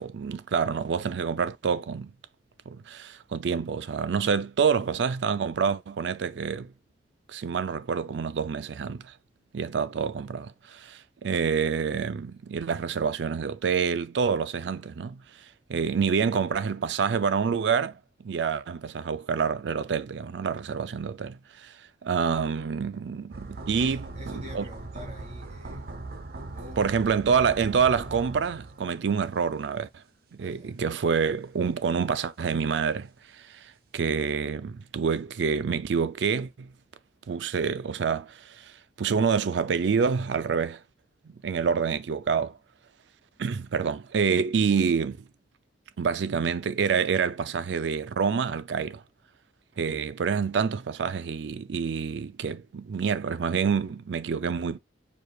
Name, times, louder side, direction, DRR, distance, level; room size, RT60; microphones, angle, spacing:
voice 1, 0.0-2.1 2.7-6.7 7.3-9.1 9.5-15.2 15.7-17.9 18.2-21.7 22.0-24.1 24.3-24.7 26.8-29.9 30.3-36.7 37.3-40.8 41.4-42.6 43.4-45.3 46.0-49.0 49.8-54.8, right 6 dB, 80° right, 0.4 m, -27 dB
sound 1, 23.3-29.4 29.7-29.8, right 2 dB, 55° right, 0.8 m, -40 dB
voice 2, 23.8-26.0 26.5-27.1 30.4-30.8, left 1 dB, 40° right, 2.1 m, -46 dB
4.8 x 4.6 x 2.3 m
head